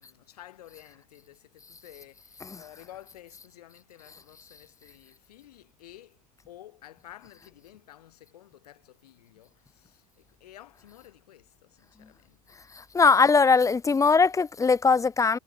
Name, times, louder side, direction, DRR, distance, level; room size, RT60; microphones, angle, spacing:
voice 1, 0.0-12.6, left 13 dB, 85° left, 3.5 m, -52 dB
voice 2, 12.7-15.4, left 4 dB, 15° left, 1.1 m, -20 dB
hypercardioid pair, 95°, 19 cm